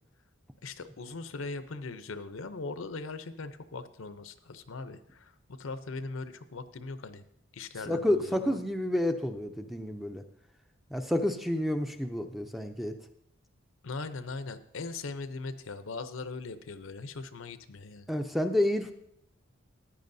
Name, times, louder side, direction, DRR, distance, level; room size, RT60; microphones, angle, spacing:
voice 1, 0.6-7.2 7.5-8.6 13.8-18.1, left 3 dB, 80° left, 11 dB, 0.7 m, -40 dB
voice 2, 7.9-10.2 10.9-13.0 18.1-18.9, left 1 dB, ahead, 7 dB, 0.4 m, -29 dB
14.0 x 10.0 x 2.7 m, 0.73 s
head